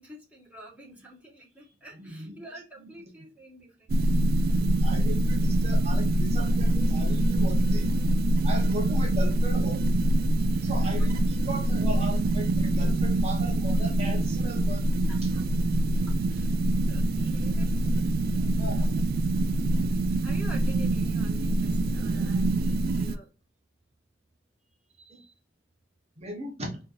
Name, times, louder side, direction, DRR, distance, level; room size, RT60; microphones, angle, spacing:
voice 1, 0.0-4.1 4.5-4.6 10.4-11.1 15.1-15.4 16.3-16.6 16.9-17.9 18.5-19.0 20.2-23.3, right 2 dB, 10° right, -4 dB, 1.6 m, -49 dB
voice 2, 1.9-3.1 4.5-8.0 8.4-9.9 10.6-15.3 18.6-19.0 25.0-25.3 26.2-26.8, right 1 dB, 35° right, 0 dB, 1.1 m, -38 dB
sound 1, 3.9-23.2, right 1 dB, 55° right, 0.3 m, -24 dB
4.4 x 2.8 x 2.6 m, 0.32 s
head